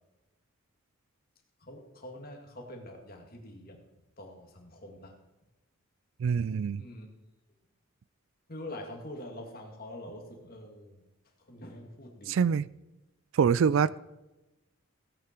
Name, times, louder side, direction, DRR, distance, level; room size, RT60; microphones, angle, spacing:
voice 1, 1.6-3.8 4.2-5.2 6.8-7.1 8.5-11.0 11.5-12.5, left 1 dB, 45° left, 2 dB, 2.1 m, -45 dB
voice 2, 6.2-6.8 12.3-12.7 13.3-14.0, right 6 dB, 65° right, 19 dB, 0.3 m, -25 dB
16.5 x 8.7 x 4.5 m, 1.0 s
head